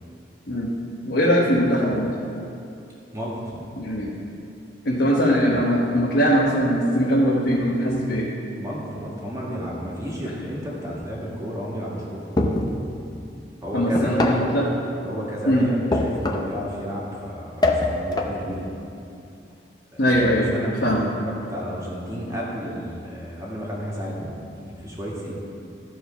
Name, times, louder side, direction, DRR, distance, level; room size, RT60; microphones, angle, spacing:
voice 1, 1.1-2.1 3.8-4.1 4.8-8.3 13.7-14.7 15.4-15.7 20.0-20.5 20.8-21.0, equal, 70° left, -5 dB, 1.3 m, -20 dB
voice 2, 3.1-3.6 8.6-12.3 13.6-14.5 15.0-18.7 19.9-20.2 20.5-25.3, equal, 20° right, -5 dB, 1.9 m, -32 dB
sound 1, 12.4-12.8 13.9-14.5 15.9-16.6 17.6-18.4, left 2 dB, 20° left, 0.6 m, -23 dB
14.0 x 4.8 x 5.7 m, 2.6 s
head